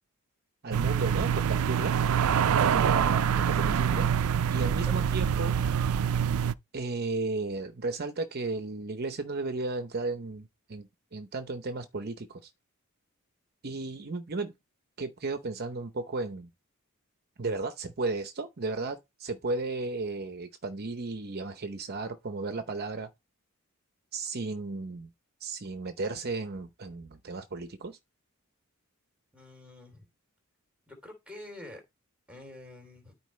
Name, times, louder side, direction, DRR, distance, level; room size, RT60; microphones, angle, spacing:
voice 1, 0.6-1.9 2.5-4.1 4.5-5.6 6.7-12.5 13.6-14.5 15.0-16.5 17.4-23.1 24.1-25.1 25.4-28.0, right 3 dB, 50° right, 0.7 m, -34 dB
sound 1, 0.7-6.5, right 8 dB, 80° right, 0.4 m, -25 dB
voice 2, 29.3-30.1 30.9-31.8 32.3-33.1, left 1 dB, 5° right, 3.2 m, -47 dB
12.5 x 4.6 x 3.2 m
head